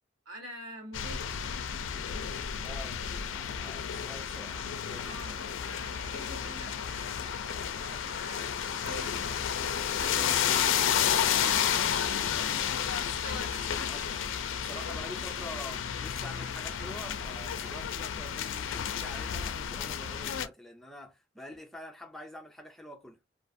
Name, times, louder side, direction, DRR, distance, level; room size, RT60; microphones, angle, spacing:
voice 1, 0.2-2.4 5.0-7.5 8.0-10.6 11.2-12.6 13.2-14.4 14.7-15.2, equal, 90° right, 1.2 m, -47 dB
sound 1, 0.9-20.5, left 8 dB, 75° left, 0.4 m, -32 dB
voice 2, 2.6-5.1 13.9-14.0 14.6-23.2, left 1 dB, ahead, 0.5 m, -46 dB
sound 2, 3.9-18.2, right 3 dB, 55° right, 0.7 m, -54 dB
2.4 x 2.4 x 2.5 m
head